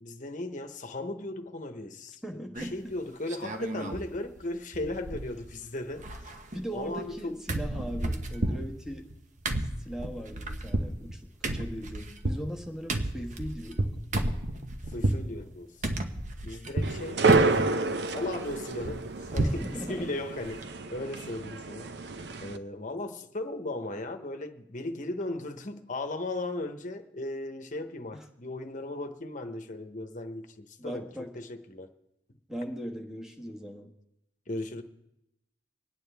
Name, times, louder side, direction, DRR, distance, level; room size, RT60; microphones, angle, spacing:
voice 1, 0.0-6.1 6.7-7.3 14.9-15.7 16.4-19.1 19.3-31.1 31.3-31.9 34.5-34.8, left 2 dB, 45° left, 1.0 m, -37 dB
voice 2, 2.2-2.8 6.5-9.1 9.8-13.9 19.4-20.1 28.1-28.2 30.8-31.3 32.5-33.9, equal, 5° right, 1.2 m, -39 dB
sound 1, 2.5-2.9 3.3-4.1 4.4-4.5 4.7-5.6 5.8-7.2 7.5-15.3 15.8-17.0 17.3-17.7 18.1-19.7 20.0-20.1 20.4-20.6, right 1 dB, 45° right, 1.0 m, -32 dB
sound 2, 16.8-22.6, right 3 dB, 70° right, 0.6 m, -29 dB
25.5 x 9.3 x 3.4 m
head